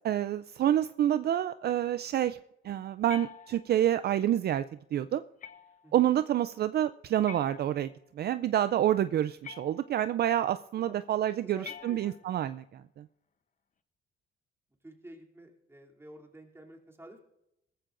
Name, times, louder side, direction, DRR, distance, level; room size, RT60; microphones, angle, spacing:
voice 1, 0.0-2.4 2.6-4.6 4.9-5.2 5.9-13.0, right 11 dB, 55° right, 12 dB, 0.4 m, -28 dB
sound 1, 3.1-4.0 5.4-6.0 7.3-8.1 9.4-10.2 11.6-12.5, left 8 dB, 40° left, 0.8 m, -47 dB
voice 2, 10.8-12.2 14.8-17.2, right 1 dB, 10° right, -1 dB, 3.0 m, -51 dB
19.0 x 14.5 x 2.6 m, 0.82 s
cardioid pair, 90°, 20 cm